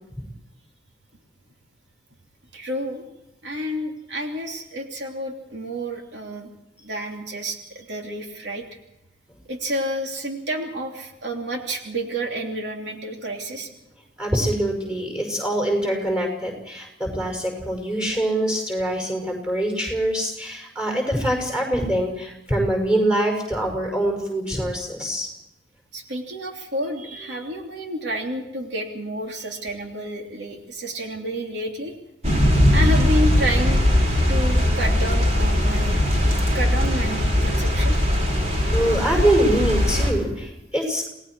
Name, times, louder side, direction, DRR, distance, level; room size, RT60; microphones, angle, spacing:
voice 1, 2.5-3.0 3.4-6.5 6.8-8.6 9.5-13.7 25.9-32.0 32.7-33.8 34.3-36.0 36.5-38.0, equal, 75° right, 2 dB, 3.0 m, -30 dB
voice 2, 14.2-25.3 38.7-41.1, right 1 dB, 5° right, 2 dB, 6.1 m, -24 dB
sound 1, 32.2-40.1, left 1 dB, 35° right, 4.5 m, -20 dB
28.5 x 19.0 x 4.8 m, 0.85 s
head